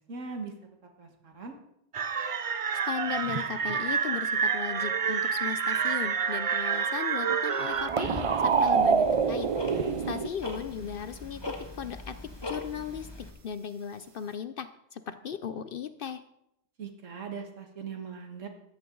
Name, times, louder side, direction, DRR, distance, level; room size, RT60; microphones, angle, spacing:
voice 1, 0.1-0.6 1.0-1.6 9.7-10.2 16.8-18.5, right 5 dB, 80° right, 4 dB, 2.0 m, -40 dB
sound 1, 1.9-10.3, right 6 dB, 50° right, 0.4 m, -27 dB
voice 2, 2.9-12.2 12.4-13.1 13.4-16.2, left 7 dB, 60° left, 11 dB, 0.7 m, -37 dB
Tick-tock, 7.7-13.3, left 2 dB, 20° left, 1.5 m, -41 dB
14.0 x 10.5 x 3.8 m, 0.79 s
omnidirectional pair, 1.3 m